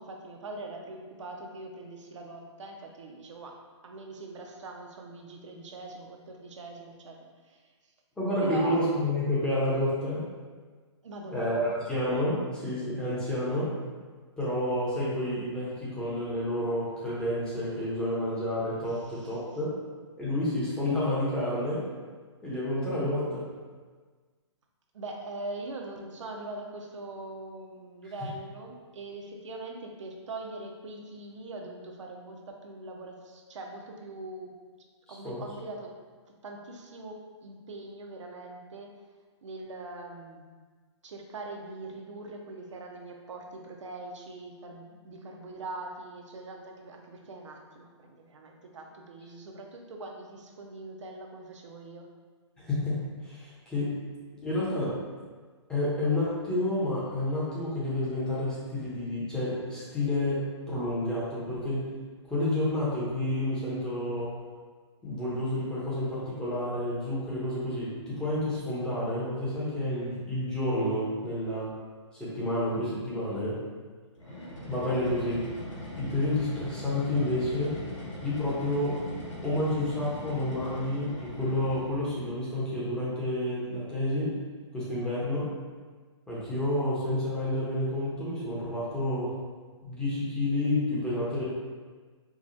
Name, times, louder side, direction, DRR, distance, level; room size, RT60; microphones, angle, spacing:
voice 1, 0.0-3.6 3.8-7.2 7.4-7.6 8.4-8.8 11.0-11.7 18.9-19.4 24.9-34.5 35.1-35.9 36.4-38.9 39.4-40.5 41.0-52.1, right 2 dB, 80° right, 2 dB, 0.7 m, -42 dB
voice 2, 8.2-10.3 11.3-13.7 14.4-19.7 20.2-21.9 22.4-23.5 35.2-35.4 52.6-54.0 54.4-55.0 55.7-61.8 62.3-64.4 65.0-71.7 72.2-73.6 74.6-75.5 76.0-77.8 78.2-79.0 79.4-84.4 84.7-85.5 86.3-89.4 89.8-91.4, left 1 dB, 5° left, -9 dB, 0.9 m, -29 dB
sound 1, 74.2-82.2, left 1 dB, 90° left, 1.3 m, -41 dB
4.7 x 2.3 x 2.6 m, 1.5 s
hypercardioid pair, 155°, 15 cm